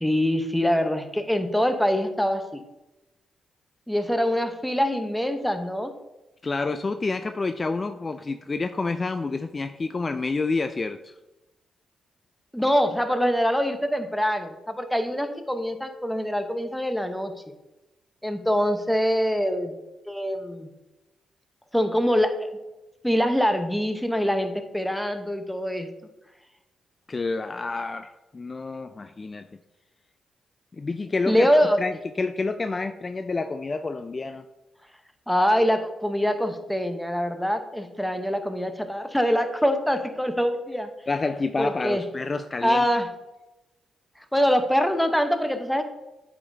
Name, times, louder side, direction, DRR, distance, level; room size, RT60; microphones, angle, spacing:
voice 1, 0.0-2.6 3.9-5.9 12.5-17.3 18.2-19.7 20.1-20.7 21.7-22.5 23.0-25.9 31.3-31.8 35.3-40.9 41.6-42.0 42.6-43.1 44.3-45.8, equal, 5° left, 7 dB, 0.9 m, -24 dB
voice 2, 6.4-11.1 27.1-29.5 30.8-31.5 31.8-34.5 41.1-42.9, left 3 dB, 40° left, 9 dB, 0.3 m, -28 dB
8.4 x 5.1 x 2.7 m, 1.0 s
supercardioid pair, 45°, 0 cm